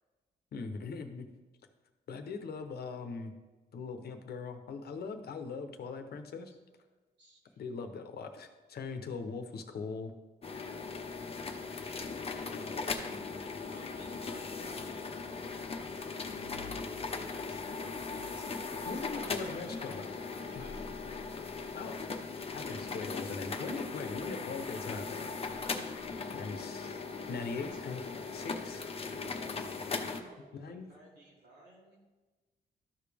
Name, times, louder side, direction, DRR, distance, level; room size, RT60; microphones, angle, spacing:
voice 1, 0.5-1.3 2.1-3.3 3.7-6.5 7.6-10.1 12.5-12.6 18.9-20.1 20.5-20.7 21.7-22.0 22.5-25.3 26.3-27.0 27.3-28.9 30.5-30.9, left 4 dB, 70° left, 6 dB, 0.9 m, -40 dB
voice 2, 7.2-7.6 11.5-12.1 12.3-13.2 13.7-14.9 15.3-19.8 20.5-21.0 22.6-22.9 26.1-26.9 27.4-28.8 30.1-32.0, right 1 dB, 85° right, -5 dB, 2.8 m, -57 dB
sound 1, 10.4-30.2, left 4 dB, 35° left, 0.8 m, -39 dB
13.0 x 5.1 x 3.4 m, 1.2 s
cardioid pair, 100°, 17 cm